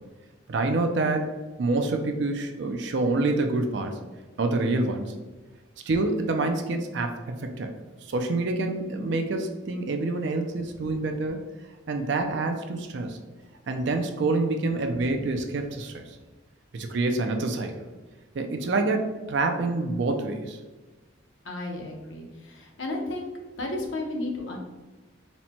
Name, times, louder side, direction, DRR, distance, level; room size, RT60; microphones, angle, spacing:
voice 1, 0.5-1.3 1.6-4.0 4.4-5.1 5.8-7.7 8.1-11.4 11.9-13.2 13.7-16.0 16.7-17.7 18.4-20.6, right 2 dB, 60° right, 5 dB, 0.4 m, -27 dB
voice 2, 21.4-23.3 23.6-24.6, left 2 dB, 70° left, 0 dB, 0.9 m, -33 dB
4.2 x 2.1 x 4.2 m, 1.2 s
head